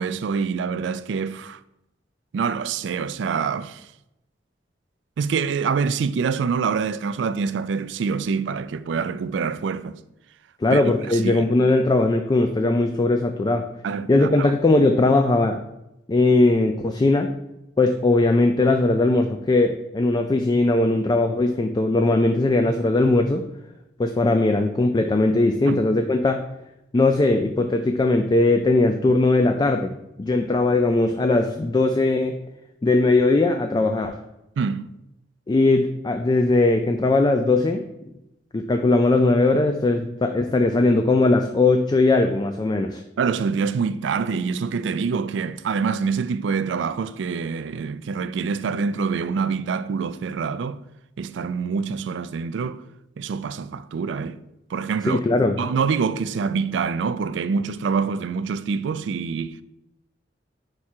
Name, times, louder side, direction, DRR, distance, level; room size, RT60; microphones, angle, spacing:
voice 1, 0.0-1.6 2.3-3.9 5.2-10.0 10.7-10.8 11.1-11.4 13.8-14.5 25.7-25.8 34.6-34.8 43.2-50.8 51.2-52.8 53.2-54.4 54.7-55.3 55.6-59.6, right 5 dB, 75° right, 0.3 m, -26 dB
voice 2, 10.6-13.7 14.1-15.6 16.1-17.3 17.8-23.4 24.0-26.4 26.9-29.9 30.2-32.4 32.8-34.2 35.5-37.8 38.5-43.0 55.1-55.6, left 2 dB, 25° left, 0.3 m, -19 dB
4.9 x 4.8 x 4.3 m
head